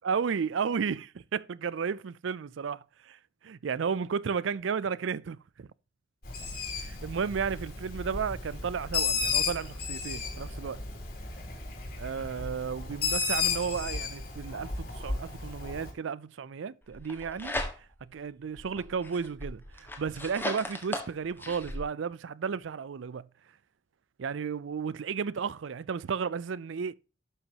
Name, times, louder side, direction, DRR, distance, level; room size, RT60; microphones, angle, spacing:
voice 1, 0.0-3.2 3.4-5.7 6.8-10.8 12.0-17.5 18.1-23.3 24.2-26.9, right 6 dB, 80° right, 0.4 m, -33 dB
Bird, 6.2-15.9, left 5 dB, 55° left, 2.9 m, -33 dB
sound 1, 16.9-18.1 18.6-21.8, left 1 dB, 10° left, 1.6 m, -37 dB
12.0 x 6.0 x 2.9 m
head